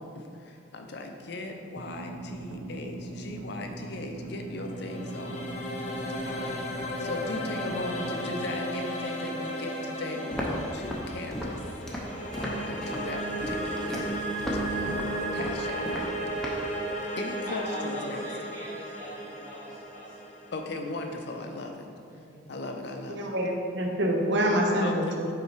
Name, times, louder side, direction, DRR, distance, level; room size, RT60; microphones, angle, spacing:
voice 1, 0.0-5.5 6.2-11.6 11.9-14.1 14.7-15.9 17.2-18.2 20.5-21.9 22.5-23.3 24.8-25.2, left 2 dB, 55° left, 4 dB, 0.5 m, -38 dB
sound 1, 1.8-8.5, right 2 dB, 85° right, 0.6 m, -40 dB
sound 2, 4.4-21.5, equal, 35° left, 0.8 m, -34 dB
Walk footsteps, 10.3-16.7, equal, ahead, 0.7 m, -36 dB
voice 2, 17.5-20.2 22.1-22.4, right 1 dB, 15° right, -8 dB, 1.5 m, -42 dB
voice 3, 23.1-25.3, equal, 60° right, 0 dB, 0.8 m, -26 dB
5.5 x 4.2 x 4.6 m, 2.3 s
head